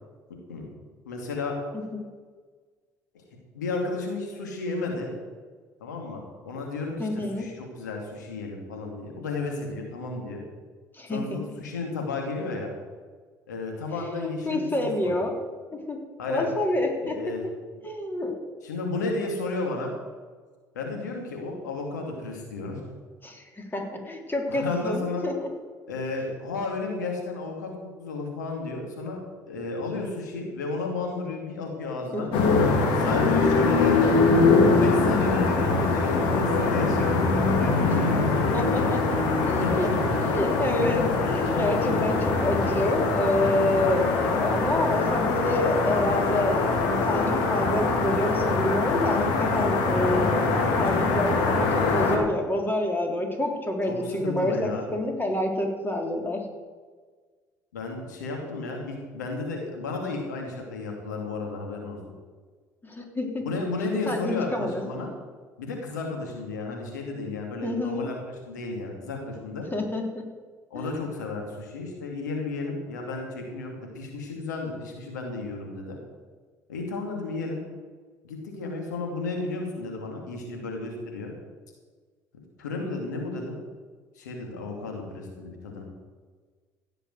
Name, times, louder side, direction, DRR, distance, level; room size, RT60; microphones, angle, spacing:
voice 1, 1.1-1.6 3.5-5.1 5.8-10.4 11.1-12.7 13.5-15.1 16.2-16.5 17.0-17.4 18.6-19.9 20.7-22.8 24.5-25.3 25.9-27.7 28.0-29.2 29.5-32.3 33.0-34.1 34.6-38.8 39.5-39.9 53.9-54.9 57.7-62.0 63.4-65.1 65.6-68.2 68.5-69.7 70.7-76.0 76.7-77.6 78.2-81.3 82.6-83.6 84.2-85.8, left 3 dB, 85° left, 1 dB, 2.6 m, -33 dB
voice 2, 7.0-7.5 10.9-11.2 13.9-15.3 15.7-16.0 16.3-17.2 17.8-18.4 23.2-25.5 32.1-32.6 33.2-33.3 33.8-34.1 38.5-56.5 62.8-63.5 64.1-64.8 67.6-68.1 69.7-70.2 70.7-71.0, left 1 dB, 20° left, 2 dB, 3.6 m, -28 dB
sound 1, 32.3-52.2, left 3 dB, 65° left, 2.5 m, -23 dB
16.0 x 6.9 x 7.8 m, 1.5 s
hypercardioid pair, 60°, 9 cm